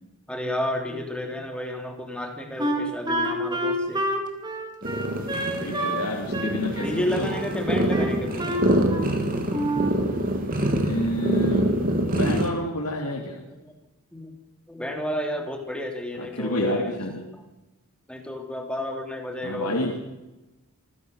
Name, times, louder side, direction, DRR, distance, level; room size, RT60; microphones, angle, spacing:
voice 1, 0.3-4.1 6.8-8.4 13.5-13.7 14.1-14.3 14.7-17.0 18.1-19.8, left 1 dB, 5° left, 3 dB, 3.0 m, -31 dB
Wind instrument woodwind instrument, 2.6-6.1 6.3-7.5 7.9-9.2 9.5-10.0, right 1 dB, 20° right, 3.2 m, -28 dB
sound 1, 4.8-12.5, right 1 dB, 40° right, 3.1 m, -25 dB
voice 2, 5.4-7.3 10.8-11.7 12.1-13.4 16.2-17.2 19.4-19.9, left 1 dB, 85° left, -1 dB, 3.4 m, -29 dB
26.5 x 16.0 x 6.7 m, 1.1 s
head